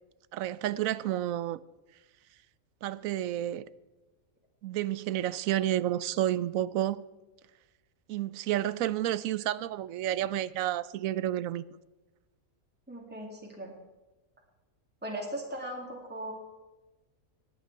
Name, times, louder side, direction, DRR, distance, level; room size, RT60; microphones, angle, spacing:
voice 1, 0.3-1.6 2.8-3.6 4.6-7.0 8.1-11.6, right 13 dB, 80° right, 1.0 m, -30 dB
voice 2, 12.9-13.7 15.0-16.3, right 1 dB, 5° right, 2.1 m, -38 dB
19.5 x 8.6 x 4.6 m
omnidirectional pair, 1.4 m